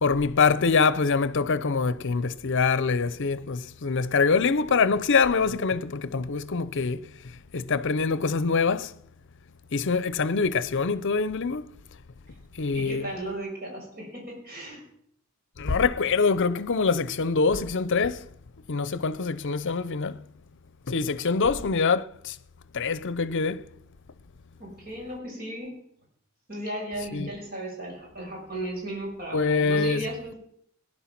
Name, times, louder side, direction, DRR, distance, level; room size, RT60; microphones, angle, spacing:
voice 1, 0.0-7.1 7.5-8.9 9.7-11.7 12.5-13.1 15.6-18.3 18.7-20.2 20.9-22.4 22.7-23.7 27.1-27.3 29.3-30.3, left 4 dB, 60° left, 0.7 m, -24 dB
voice 2, 12.7-14.8 21.3-21.7 24.6-25.8 26.5-30.4, right 1 dB, 45° right, 5.9 m, -36 dB
18.5 x 11.0 x 6.0 m
head